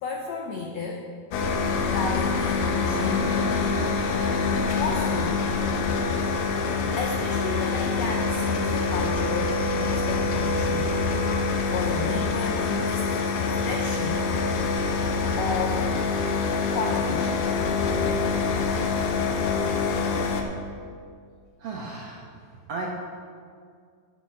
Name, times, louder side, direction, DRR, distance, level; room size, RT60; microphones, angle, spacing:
voice 1, 0.0-1.1 1.8-3.8 4.7-5.4 6.4-6.6 6.9-14.2 15.4-15.8 16.7-17.5, left 4 dB, 85° left, 1 dB, 1.4 m, -33 dB
sound 1, 1.3-20.4, left 4 dB, 70° left, 2.1 m, -25 dB
voice 2, 21.6-22.3 22.7-22.9, right 3 dB, 70° right, -2 dB, 1.5 m, -34 dB
9.8 x 7.0 x 6.2 m, 2.1 s
omnidirectional pair, 4.1 m